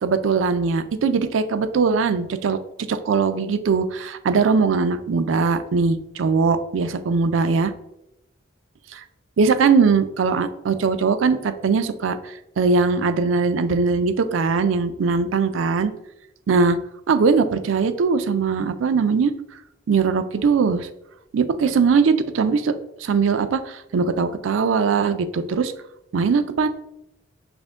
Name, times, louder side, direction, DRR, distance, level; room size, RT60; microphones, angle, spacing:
voice 1, 0.0-7.7 8.9-9.0 9.4-15.9 16.5-16.8 17.1-19.3 19.9-20.9 21.3-22.7 23.0-25.7 26.1-26.7, right 5 dB, 90° right, 10 dB, 0.4 m, -20 dB
6.0 x 2.1 x 3.5 m, 0.83 s
head